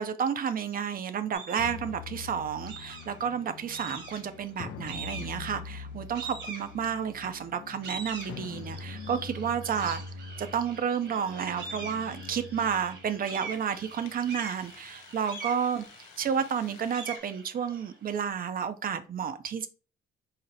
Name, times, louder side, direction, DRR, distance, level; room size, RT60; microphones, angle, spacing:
voice 1, 0.0-10.0 10.4-15.8 16.2-19.7, right 7 dB, 45° right, 0.5 m, -31 dB
sound 1, 1.3-1.9 2.7-3.3 3.7-4.4 4.9-5.5 6.1-7.1 7.6-18.3, right 4 dB, 65° right, 1.3 m, -43 dB
sound 2, 1.6-17.2, left 5 dB, 80° left, 0.5 m, -45 dB
4.0 x 2.0 x 3.9 m
cardioid pair, 90°, 20 cm